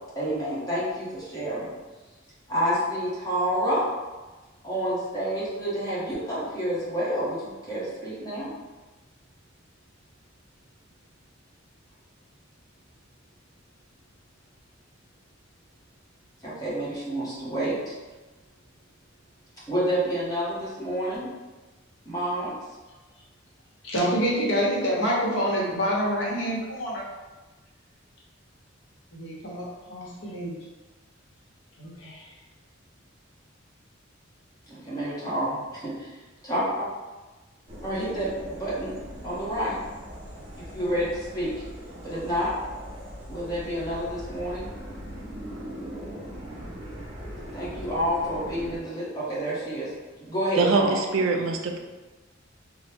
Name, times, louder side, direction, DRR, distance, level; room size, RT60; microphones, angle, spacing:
voice 1, 0.1-1.7 2.5-3.8 4.6-8.5 16.4-17.9 19.7-21.3 22.0-22.5 34.7-36.1 36.4-36.9 37.8-38.9 39.2-39.7 40.6-41.5 42.0-42.5 43.3-44.7 47.5-49.9 50.2-51.0, equal, 20° left, -9 dB, 1.0 m, -29 dB
voice 2, 23.8-27.0 29.1-30.6 31.8-32.3, equal, 70° left, -5 dB, 0.9 m, -27 dB
sound 1, 37.7-48.8, equal, 35° right, 0.7 m, -40 dB
voice 3, 50.6-51.8, right 3 dB, 85° right, 3 dB, 0.4 m, -23 dB
3.1 x 2.1 x 3.3 m, 1.2 s
head